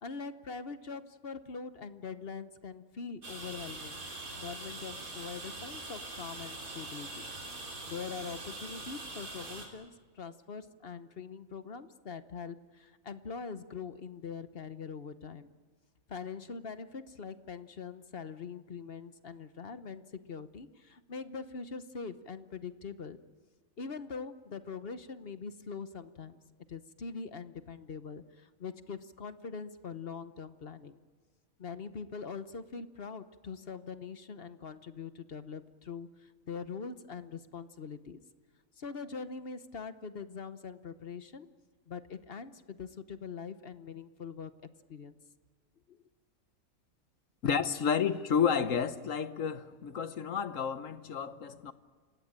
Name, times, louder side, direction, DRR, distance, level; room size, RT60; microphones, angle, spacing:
voice 1, 0.0-4.0 4.4-7.2 7.9-15.5 16.1-23.2 23.8-26.4 26.7-31.0 31.6-38.2 38.8-41.5 41.9-44.5 44.9-45.2 45.9-46.0, left 5 dB, 45° left, 1.1 m, -43 dB
sound 1, 3.2-9.7, right 2 dB, 85° right, 4.0 m, -43 dB
voice 2, 47.4-51.7, left 7 dB, 65° left, 1.4 m, -31 dB
29.5 x 17.0 x 8.8 m
omnidirectional pair, 1.5 m